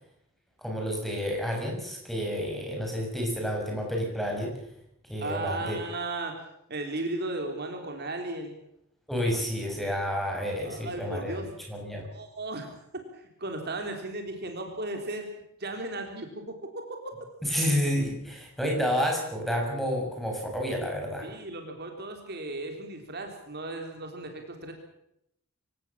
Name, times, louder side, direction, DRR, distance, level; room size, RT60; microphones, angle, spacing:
voice 1, 0.6-4.5 5.1-5.8 9.1-11.4 11.7-12.0 17.4-21.3, equal, ahead, 1 dB, 6.5 m, -30 dB
voice 2, 5.2-6.4 6.7-8.6 10.6-11.5 12.1-12.7 13.1-15.3 15.6-17.0 21.2-24.7, right 2 dB, 50° right, 4 dB, 3.7 m, -35 dB
25.0 x 17.5 x 7.4 m, 0.75 s
head